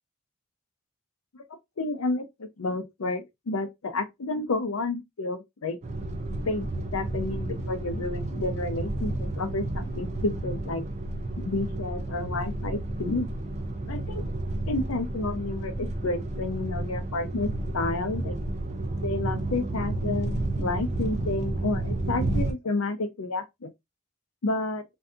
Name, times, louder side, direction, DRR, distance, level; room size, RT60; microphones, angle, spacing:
voice 1, 1.8-5.8 6.4-10.8 11.4-13.3 13.9-14.2 14.7-18.4 19.0-23.7 24.4-24.8, left 2 dB, 85° left, 0.6 m, -30 dB
sound 1, 5.8-22.5, right 2 dB, 35° right, 0.3 m, -31 dB
2.6 x 2.3 x 2.4 m
head